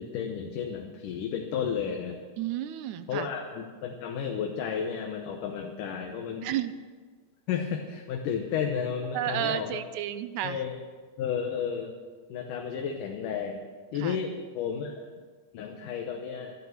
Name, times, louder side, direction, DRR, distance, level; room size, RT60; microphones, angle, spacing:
voice 1, 0.0-2.2 3.1-6.5 7.5-9.8 10.4-10.8 11.2-12.0 12.3-13.6 13.9-15.1 15.5-16.6, left 7 dB, 85° left, 2 dB, 2.6 m, -32 dB
voice 2, 2.4-3.3 6.4-6.7 9.1-10.6 14.0-14.2, right 12 dB, 80° right, 12 dB, 2.0 m, -32 dB
14.0 x 11.0 x 6.8 m, 1.5 s
omnidirectional pair, 3.6 m